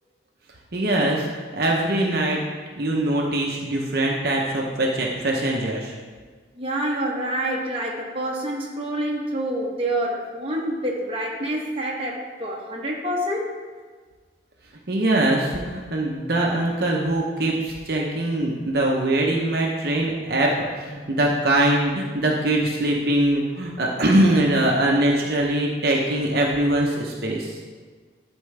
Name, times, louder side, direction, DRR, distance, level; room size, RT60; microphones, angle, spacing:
voice 1, 0.7-2.4 2.8-5.9 14.9-27.6, right 1 dB, 55° right, -1 dB, 0.8 m, -22 dB
voice 2, 6.5-13.6, right 1 dB, 30° right, -2 dB, 1.0 m, -27 dB
11.5 x 4.5 x 3.3 m, 1.5 s
head